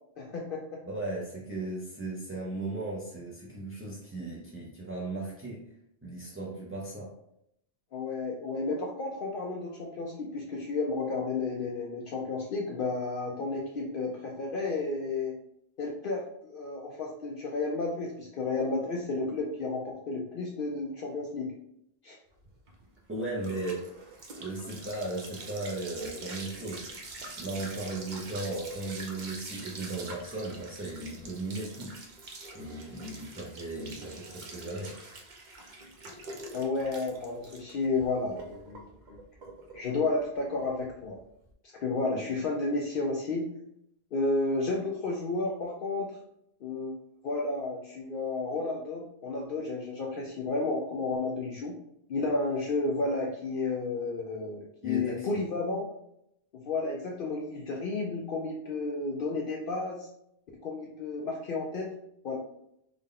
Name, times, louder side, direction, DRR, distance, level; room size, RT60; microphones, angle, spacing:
voice 1, 0.2-0.6 7.9-15.3 15.8-21.5 22.0-22.2 36.5-38.8 39.1-39.2 39.7-41.2 41.8-43.5 44.1-46.1 46.6-46.9 47.2-51.7 52.1-55.8 56.5-60.1 60.6-61.9 62.2-62.4, left 3 dB, 60° left, -1 dB, 0.7 m, -32 dB
voice 2, 0.9-5.6 6.0-7.1 23.1-23.9 24.4-26.9 27.4-31.9 32.5-34.9 54.8-55.4, right 2 dB, 20° right, -5 dB, 0.3 m, -36 dB
sound 1, 22.4-41.5, right 2 dB, 50° right, 0.7 m, -45 dB
3.5 x 2.2 x 3.6 m, 0.76 s
omnidirectional pair, 1.1 m